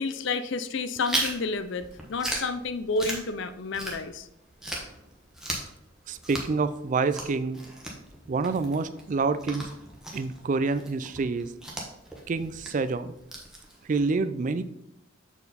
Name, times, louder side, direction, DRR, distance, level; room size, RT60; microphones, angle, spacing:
voice 1, 0.0-1.8 2.1-4.3, left 3 dB, 60° left, 12 dB, 0.5 m, -30 dB
Chewing mastication, 1.0-4.3 4.6-14.1, right 1 dB, 5° right, 1.0 m, -37 dB
voice 2, 6.1-7.6 8.3-9.7 10.1-11.5 12.3-13.1 13.9-14.6, right 4 dB, 35° right, 13 dB, 0.3 m, -27 dB
7.1 x 4.5 x 4.1 m, 0.80 s
head